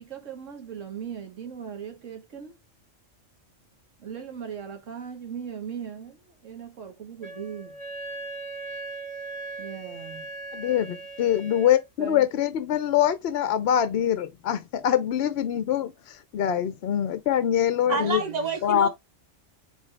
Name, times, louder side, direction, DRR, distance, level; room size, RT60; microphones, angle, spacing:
voice 1, 0.0-2.5 4.0-7.8 9.6-10.3 12.0-12.3 17.8-18.5, right 7 dB, 70° right, 1.5 m, -39 dB
Wind instrument woodwind instrument, 7.2-11.9, right 3 dB, 25° left, 1.1 m, -38 dB
voice 2, 10.5-18.2 18.6-18.9, left 10 dB, 60° left, 0.7 m, -24 dB
voice 3, 17.9-18.9, right 4 dB, 35° right, 1.1 m, -28 dB
5.0 x 3.2 x 3.2 m
omnidirectional pair, 1.4 m